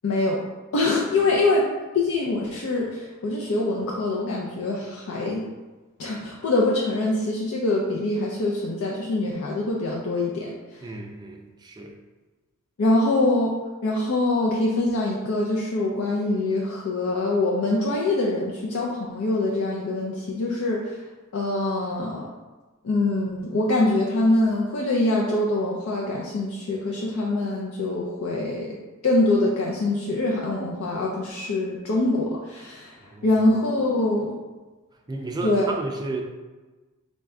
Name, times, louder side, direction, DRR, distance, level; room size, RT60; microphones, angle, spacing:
voice 1, 0.0-0.4 0.7-1.7 1.9-5.4 6.0-10.8 12.8-13.5 13.8-21.0 21.3-22.3 22.8-28.8 29.0-32.9 33.2-34.3 35.4-35.7, left 2 dB, 70° left, -3 dB, 0.4 m, -24 dB
voice 2, 1.2-1.5 10.8-12.0 33.0-33.4 35.1-36.2, right 2 dB, 20° right, 2 dB, 0.3 m, -33 dB
4.0 x 2.2 x 3.5 m, 1.2 s
head